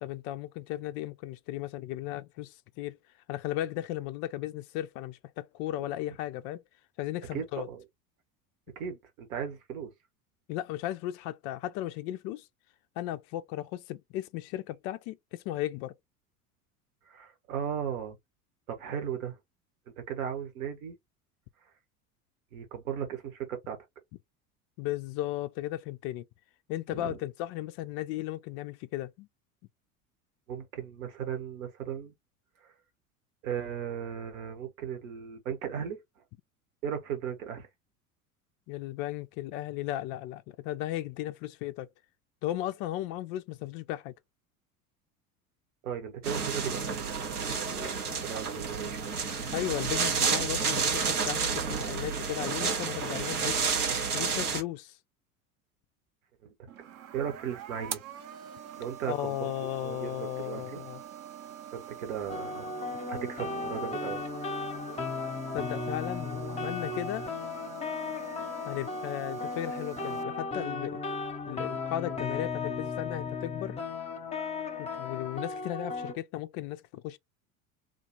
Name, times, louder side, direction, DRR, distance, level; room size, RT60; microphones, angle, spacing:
voice 1, 0.0-3.0 3.3-6.6 7.0-7.7 10.5-12.5 13.0-15.9 24.8-26.3 26.7-29.3 38.7-41.9 42.4-44.1 49.5-53.6 54.1-55.0 59.1-61.0 65.5-67.3 68.7-71.0 71.5-73.8 74.8-77.2, left 14 dB, 35° left, 0.4 m, -35 dB
voice 2, 7.3-7.8 8.7-9.9 17.1-18.2 18.7-19.4 20.0-21.0 22.5-23.8 26.9-27.2 30.5-32.1 32.6-32.7 33.4-36.0 36.8-37.7 45.8-47.9 48.2-49.2 51.6-52.2 56.4-56.7 57.1-58.4 58.8-60.8 61.7-62.8 63.1-64.2, right 8 dB, 65° right, 1.2 m, -37 dB
sound 1, 46.2-54.6, right 5 dB, 80° right, 0.9 m, -30 dB
sound 2, 56.7-70.2, right 10 dB, 35° right, 0.7 m, -45 dB
sound 3, 62.3-76.1, left 4 dB, 15° left, 0.8 m, -36 dB
3.9 x 2.3 x 2.9 m
figure-of-eight pair, 75°, 44 cm